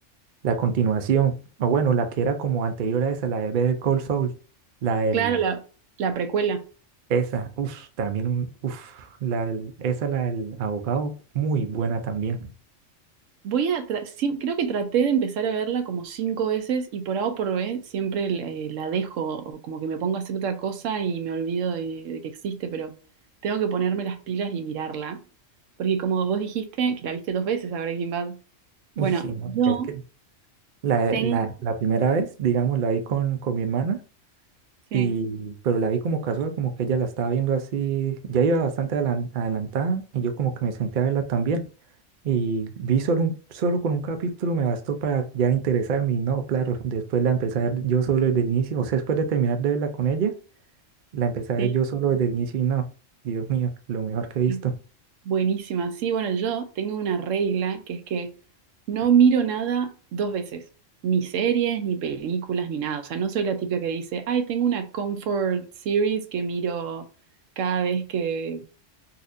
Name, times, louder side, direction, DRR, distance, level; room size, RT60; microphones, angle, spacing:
voice 1, 0.4-1.3 1.6-4.3 4.8-5.4 7.1-12.5 29.0-30.0 30.8-34.0 34.9-41.7 42.2-50.3 51.1-52.8 53.2-54.7, right 6 dB, 55° right, 0.6 m, -25 dB
voice 2, 5.1-5.6 6.0-6.6 13.4-22.9 23.4-25.2 25.8-28.4 29.0-29.9 31.1-31.4 34.9-35.1 51.6-51.7 54.5-54.6 55.2-58.3 58.9-60.6 61.0-67.0 67.6-68.6, right 7 dB, 80° right, 1.0 m, -26 dB
4.1 x 2.5 x 2.5 m
omnidirectional pair, 1.3 m